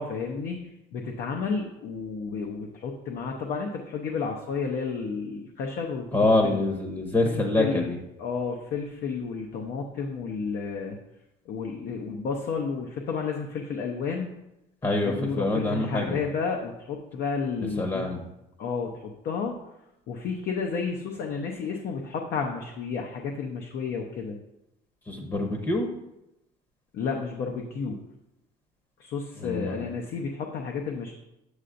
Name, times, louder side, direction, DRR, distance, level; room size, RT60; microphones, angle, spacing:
voice 1, 0.0-6.1 6.4-6.6 7.2-7.9 8.2-11.0 11.5-14.3 15.1-18.2 18.6-19.5 20.1-24.4 26.9-28.0 29.0-31.1, left 5 dB, 70° left, 1 dB, 0.7 m, -31 dB
voice 2, 6.1-8.0 14.8-16.2 17.8-18.2 25.1-25.9 29.4-29.8, left 2 dB, 20° left, 3 dB, 0.9 m, -25 dB
8.0 x 6.7 x 2.6 m, 0.89 s
cardioid pair, 110°, 17 cm